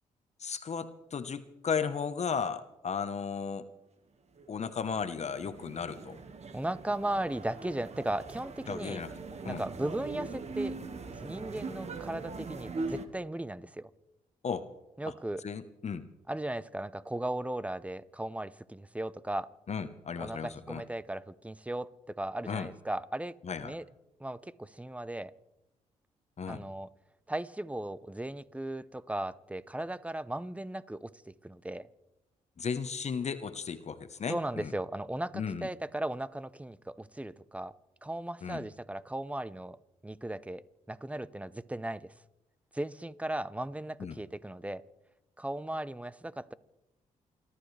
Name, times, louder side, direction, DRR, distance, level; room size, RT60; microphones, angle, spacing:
voice 1, 0.4-3.6 4.5-6.2 8.7-9.1 9.4-9.6 14.4-14.7 15.0-15.1 15.4-16.1 19.7-20.8 22.5-22.7 23.4-23.7 26.4-26.6 32.6-34.7 35.3-35.7 38.4-38.6 44.0-44.2, left 6 dB, 50° left, 10 dB, 1.1 m, -35 dB
sound 1, 4.4-13.1, right 3 dB, 50° right, 1.7 m, -41 dB
voice 2, 6.5-9.0 9.4-10.8 11.0-13.9 15.0-15.4 16.3-19.5 20.2-23.3 23.6-23.8 24.2-25.3 26.5-26.9 27.3-31.1 31.4-31.9 34.3-37.7 38.0-39.8 40.0-40.6 40.9-42.1 42.7-44.8 45.4-46.5, right 1 dB, 10° right, 17 dB, 0.8 m, -36 dB
29.0 x 13.0 x 3.4 m, 0.93 s
supercardioid pair, 60°, 15 cm